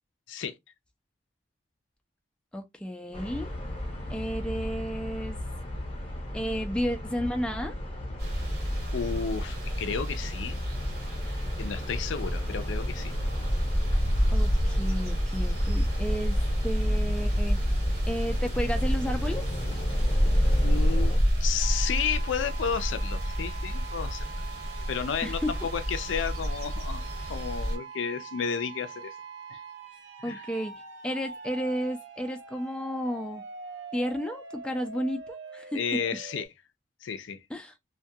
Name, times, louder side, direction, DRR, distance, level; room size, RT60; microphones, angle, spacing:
voice 1, 2.5-3.5 4.1-5.4 6.3-7.8 14.3-17.6 18.1-19.4 25.2-25.5 30.2-30.7 31.0-33.4 33.9-36.0 37.5-37.7, equal, 5° left, 0.3 m, -32 dB
sound 1, 3.1-21.2, left 1 dB, 30° left, 0.8 m, -36 dB
sound 2, 8.2-27.8, equal, 60° right, 1.2 m, -28 dB
voice 2, 8.9-10.6 11.6-13.1 20.4-24.3 24.9-25.4 25.7-29.1 29.5-29.6 30.2-30.4 35.7-36.5 37.0-37.4, left 7 dB, 85° left, 0.4 m, -32 dB
sound 3, 21.6-36.5, right 5 dB, 75° right, 0.5 m, -43 dB
2.3 x 2.2 x 2.6 m
head